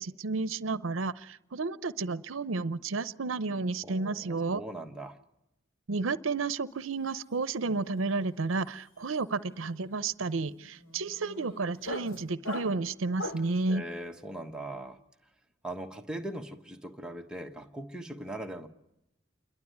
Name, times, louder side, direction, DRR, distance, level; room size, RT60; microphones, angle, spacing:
voice 1, 0.0-4.6 5.9-13.8, right 3 dB, 80° right, 0.7 m, -32 dB
voice 2, 3.8-5.2 13.7-15.0 15.6-18.7, right 1 dB, 5° right, 1.3 m, -40 dB
sound 1, 6.8-7.1 7.3-13.6, equal, 80° left, 2.8 m, -43 dB
28.5 x 12.0 x 9.3 m
head